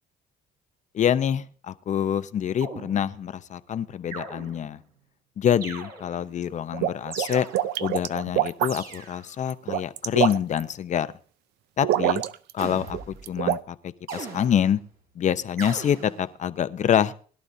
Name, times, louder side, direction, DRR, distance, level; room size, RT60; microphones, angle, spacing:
voice 1, 0.9-4.8 5.4-7.5 7.8-11.1 11.8-12.2 12.5-14.8 15.2-17.1, left 9 dB, 45° left, 13 dB, 0.7 m, -26 dB
sound 1, 2.6-3.4 4.1-4.9 5.6-6.4 7.1-7.9 8.6-9.4 12.6-13.4 14.1-14.9 15.6-16.3, right 4 dB, 65° right, 4.4 m, -40 dB
sound 2, 6.5-8.9 9.5-10.6 11.8-12.6 12.9-13.6, right 12 dB, 80° right, 0.6 m, -25 dB
21.5 x 11.5 x 2.7 m, 0.43 s
cardioid pair, 110°, 17 cm